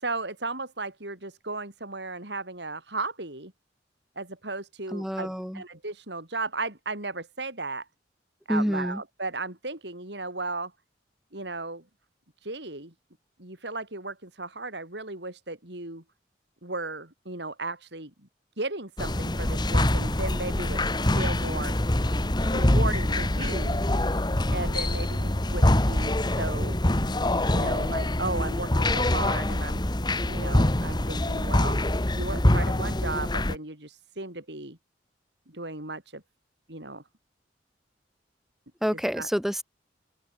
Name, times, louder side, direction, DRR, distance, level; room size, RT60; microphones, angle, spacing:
voice 1, 0.0-3.5 4.2-7.9 8.5-10.7 11.3-11.9 12.4-12.9 13.4-16.0 16.6-18.3 18.6-20.8 21.1-21.8 22.5-24.0 24.5-26.8 27.5-29.8 30.2-31.8 32.2-34.8 35.5-36.2 36.7-37.0 39.2-39.3, right 3 dB, 65° right, 5.6 m, -35 dB
voice 2, 4.9-5.6 8.5-9.0 38.8-39.6, equal, ahead, 1.1 m, -28 dB
sound 1, 19.0-33.6, left 1 dB, 25° left, 1.5 m, -25 dB
open air
head